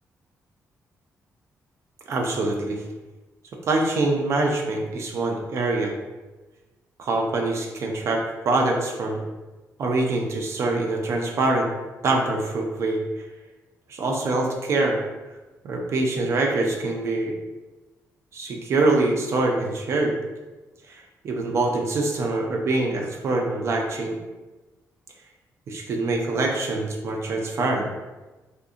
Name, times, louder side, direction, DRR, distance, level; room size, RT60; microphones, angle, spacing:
voice 1, 2.1-2.8 3.7-5.9 7.0-9.2 9.8-11.7 12.0-13.3 13.9-15.0 15.6-17.3 18.3-20.1 20.9-24.2 25.7-27.9, right 2 dB, 55° right, 1 dB, 0.3 m, -24 dB
2.7 x 2.4 x 2.4 m, 1.2 s
cardioid pair, 145°, 6 cm